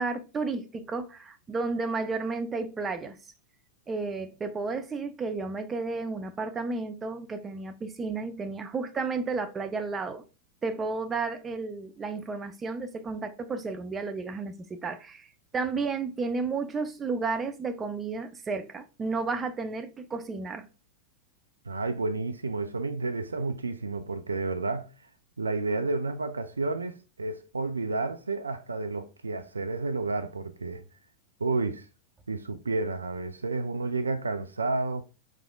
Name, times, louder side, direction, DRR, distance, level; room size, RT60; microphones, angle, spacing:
voice 1, 0.0-3.2 3.9-10.2 10.6-20.6, right 4 dB, 20° right, 0.5 m, -32 dB
voice 2, 21.7-24.9 25.4-30.8 31.4-31.9 32.3-35.0, right 3 dB, 75° right, 0.4 m, -31 dB
4.7 x 3.6 x 2.2 m
figure-of-eight pair, 90°, 0 cm